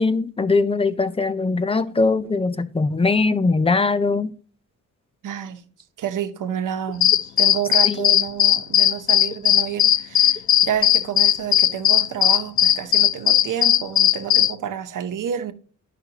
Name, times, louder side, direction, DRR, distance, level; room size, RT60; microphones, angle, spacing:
voice 1, 0.0-4.3 7.8-8.1, left 3 dB, 20° left, 0.5 m, -21 dB
voice 2, 5.2-5.6 6.0-15.5, right 9 dB, 80° right, 0.9 m, -29 dB
sound 1, 7.0-14.5, left 11 dB, 65° left, 0.5 m, -17 dB
10.5 x 5.9 x 2.9 m
wide cardioid pair, 140°, 31 cm